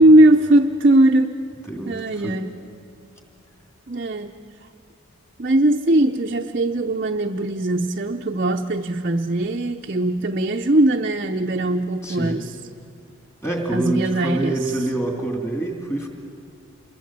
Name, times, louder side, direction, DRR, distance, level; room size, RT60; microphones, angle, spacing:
voice 1, 0.0-1.4 1.9-2.5 3.9-4.3 5.4-12.5 13.7-14.6, right 1 dB, 40° right, 1 dB, 0.6 m, -19 dB
voice 2, 1.7-2.4 12.0-12.5 13.4-16.1, right 2 dB, 15° left, 1 dB, 2.7 m, -26 dB
27.5 x 22.0 x 7.5 m, 2.5 s
head